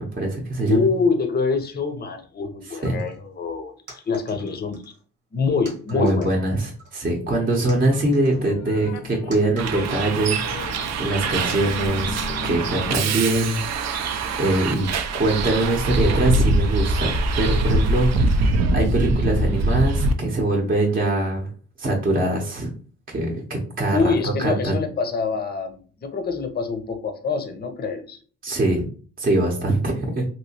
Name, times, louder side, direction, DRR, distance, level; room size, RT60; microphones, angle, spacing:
voice 1, 0.0-0.9 2.7-3.0 5.9-14.9 15.2-21.5 21.8-22.7 23.1-24.8 28.4-28.8 29.2-30.3, right 2 dB, 30° right, 0 dB, 0.8 m, -23 dB
voice 2, 0.7-4.8 5.3-6.3 23.9-28.2, left 4 dB, 30° left, 7 dB, 0.7 m, -25 dB
sound 1, 2.8-3.2 3.9-5.0 5.7-6.4 6.8-7.3 7.7-10.2 10.6-10.7 11.5-12.6, right 2 dB, 90° right, 1.3 m, -45 dB
sound 2, 7.7-13.4, left 7 dB, 70° left, 0.5 m, -37 dB
Bus, 9.6-20.1, right 2 dB, 60° right, 0.5 m, -23 dB
3.0 x 2.9 x 2.8 m, 0.41 s
cardioid pair, 90°, 30 cm